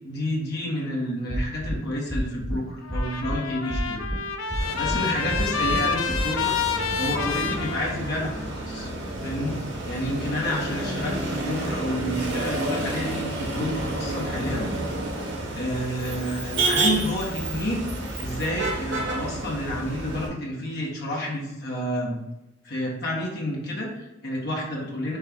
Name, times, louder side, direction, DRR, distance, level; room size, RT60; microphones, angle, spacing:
voice 1, 0.0-4.0 4.7-6.5 6.9-8.9 9.2-9.6 9.9-14.7 15.5-17.8 18.1-22.2 22.6-25.2, equal, 55° left, -3 dB, 1.2 m, -29 dB
sound 1, 1.3-1.8 2.1-2.6 2.9-3.4 3.7-4.2 4.5-5.0 5.3-5.8 6.1-6.2, equal, ahead, 0.6 m, -28 dB
Trumpet, 2.8-8.5, left 6 dB, 80° left, 0.6 m, -29 dB
Motor vehicle (road), 4.6-20.3, right 2 dB, 60° right, 1.1 m, -30 dB
4.5 x 3.2 x 3.5 m, 0.99 s
head